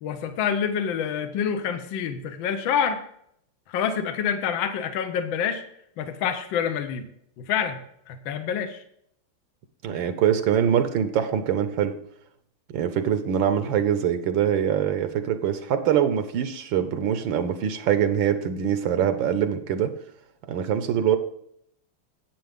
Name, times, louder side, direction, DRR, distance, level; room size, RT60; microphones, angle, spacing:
voice 1, 0.0-3.0 3.7-5.6 6.0-7.1 7.4-8.8, left 7 dB, 70° left, 8 dB, 1.5 m, -27 dB
voice 2, 9.8-12.0 12.7-19.9 20.5-21.2, right 9 dB, 70° right, 10 dB, 1.4 m, -23 dB
10.5 x 8.4 x 3.5 m, 0.71 s
omnidirectional pair, 2.3 m